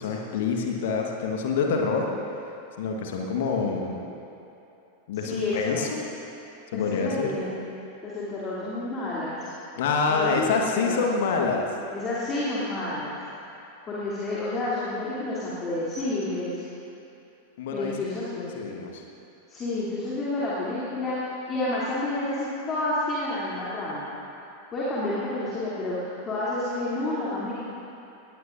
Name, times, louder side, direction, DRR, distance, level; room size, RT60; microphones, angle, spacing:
voice 1, 0.0-2.1 2.8-4.1 5.1-6.0 6.7-7.3 9.8-11.7 17.6-19.0, left 4 dB, 55° left, 1 dB, 1.4 m, -26 dB
voice 2, 5.1-5.9 6.7-7.6 8.0-9.5 10.1-11.0 11.9-13.1 13.9-16.6 17.7-18.4 19.5-21.2 21.5-24.1 24.7-27.5, left 2 dB, 25° left, -9 dB, 2.9 m, -30 dB
19.5 x 17.5 x 2.6 m, 2.9 s
figure-of-eight pair, 90°, 0 cm